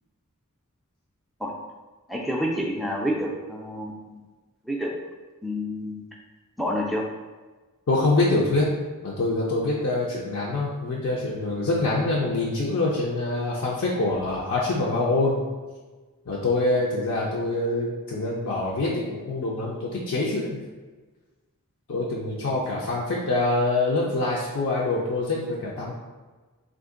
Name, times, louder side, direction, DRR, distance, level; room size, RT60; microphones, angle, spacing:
voice 1, 2.1-4.2 4.6-4.9 5.4-6.1 6.6-7.1, equal, ahead, -2 dB, 0.3 m, -28 dB
voice 2, 7.9-8.7 9.0-15.4 16.3-20.6 21.9-25.9, left 2 dB, 60° left, -4 dB, 0.5 m, -25 dB
2.9 x 2.5 x 3.7 m, 1.3 s
head